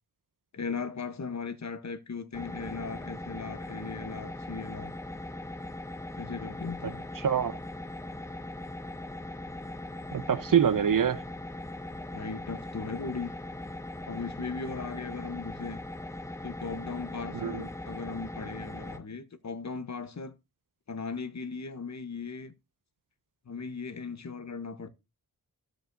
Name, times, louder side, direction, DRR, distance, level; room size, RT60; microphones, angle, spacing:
voice 1, 0.5-4.9 6.2-7.0 12.1-13.3 14.1-15.8 16.4-20.3 20.9-22.5 23.5-24.9, left 4 dB, 50° left, 0.9 m, -38 dB
sound 1, 2.3-19.0, left 1 dB, 10° left, 0.6 m, -40 dB
voice 2, 6.8-7.6 10.1-11.2 17.4-17.6, right 8 dB, 60° right, 0.8 m, -26 dB
14.5 x 5.0 x 2.6 m
wide cardioid pair, 75°, 36 cm